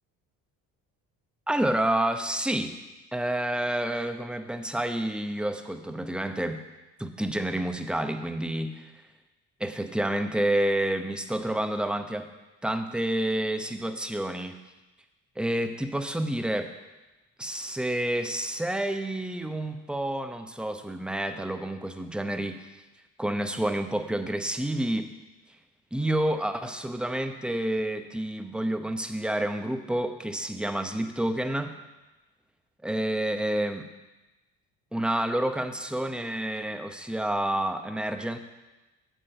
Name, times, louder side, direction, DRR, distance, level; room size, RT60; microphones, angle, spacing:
voice 1, 1.5-2.8 3.1-6.6 7.0-8.9 9.6-12.3 12.6-14.6 15.4-16.7 17.4-22.6 23.2-25.1 25.9-31.8 32.8-33.9 34.9-38.4, right 1 dB, ahead, 7 dB, 0.8 m, -29 dB
8.0 x 7.5 x 5.5 m, 1.1 s
supercardioid pair, 65°, 40 cm